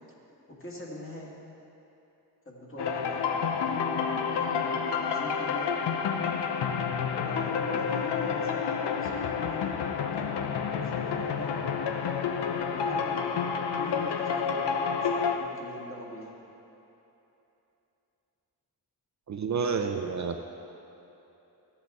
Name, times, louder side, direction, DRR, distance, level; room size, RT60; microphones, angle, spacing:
voice 1, 0.5-1.3 2.5-5.7 7.2-11.6 12.6-13.3 13.7-16.5, equal, 30° left, -4 dB, 1.9 m, -43 dB
sound 1, 2.8-15.4, left 6 dB, 90° left, 0.7 m, -29 dB
voice 2, 19.3-20.4, right 5 dB, 45° right, 5 dB, 0.5 m, -29 dB
14.0 x 8.2 x 3.6 m, 3.0 s
wide cardioid pair, 110°, 40 cm